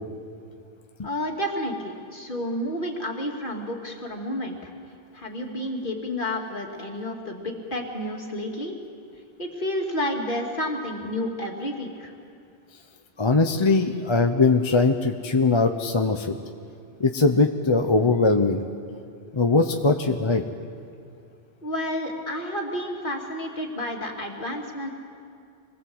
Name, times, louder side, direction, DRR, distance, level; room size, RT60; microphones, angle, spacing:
voice 1, 1.0-4.7 5.1-8.8 9.4-12.1 21.6-24.9, left 1 dB, 55° left, 0 dB, 2.7 m, -30 dB
voice 2, 13.2-16.3 17.0-18.6 19.3-20.4, left 3 dB, 30° left, 5 dB, 0.8 m, -21 dB
26.0 x 20.0 x 7.9 m, 2.5 s
omnidirectional pair, 1.0 m